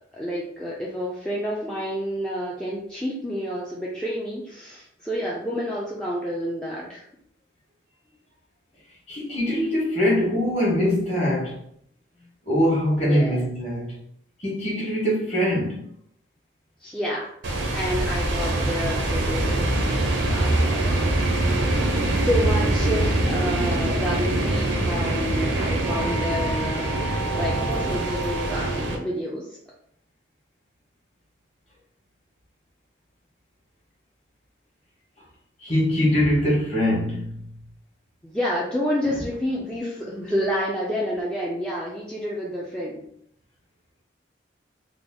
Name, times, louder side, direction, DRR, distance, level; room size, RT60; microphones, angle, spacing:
voice 1, 0.1-7.0 13.1-13.4 16.8-17.3 17.7-21.6 22.1-29.6 38.2-43.0, equal, 5° left, 0.4 m, -29 dB
voice 2, 9.1-11.6 12.4-14.0 14.4-15.9 35.6-37.5, equal, 35° left, 1.3 m, -23 dB
sound 1, 17.4-29.0, right 1 dB, 85° right, 0.7 m, -24 dB
3.5 x 2.0 x 3.7 m
head